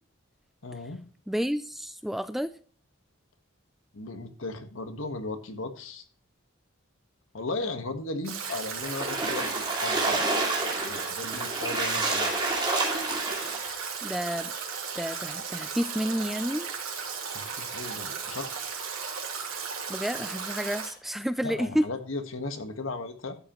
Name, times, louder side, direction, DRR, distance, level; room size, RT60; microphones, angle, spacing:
voice 1, 0.6-1.0 3.9-6.0 7.3-12.3 17.3-18.7 21.4-23.4, left 2 dB, 70° left, 7 dB, 1.4 m, -36 dB
voice 2, 1.3-2.5 14.0-14.5 15.0-16.7 19.9-21.9, equal, ahead, 12 dB, 0.3 m, -30 dB
Stream / Drip / Trickle dribble, 8.2-20.9, right 6 dB, 75° right, 3.1 m, -36 dB
Splash splatter, 8.8-13.7, right 2 dB, 20° right, 2.5 m, -29 dB
12.0 x 7.8 x 3.0 m, 0.41 s
head